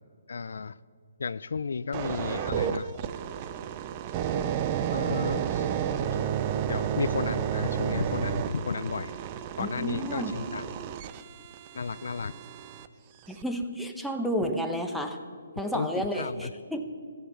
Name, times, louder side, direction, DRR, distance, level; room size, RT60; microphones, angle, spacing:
voice 1, 0.3-0.8 1.2-2.9 4.9-5.7 6.1-6.2 6.7-9.1 9.6-10.7 11.7-12.4 15.7-16.5, left 5 dB, 70° left, 17 dB, 0.3 m, -33 dB
sound 1, 1.9-12.9 13.4-13.6, right 8 dB, 30° right, 0.5 m, -31 dB
voice 2, 9.6-10.3 13.3-15.2 15.6-16.8, equal, ahead, 4 dB, 0.9 m, -31 dB
14.5 x 8.1 x 7.0 m, 2.1 s
hypercardioid pair, 150°, 0 cm